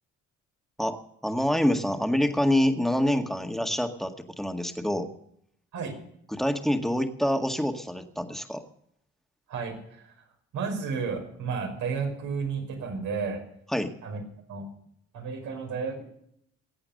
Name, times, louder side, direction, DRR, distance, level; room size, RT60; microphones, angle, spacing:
voice 1, 1.2-5.1 6.3-8.6 13.7-13.9, left 1 dB, ahead, 6 dB, 1.8 m, -26 dB
voice 2, 9.5-10.1 10.5-13.4 14.0-14.2 14.5-14.6 15.1-16.0, right 5 dB, 85° right, 2 dB, 5.4 m, -32 dB
21.5 x 8.8 x 6.6 m, 0.71 s
cardioid pair, 90°, 30 cm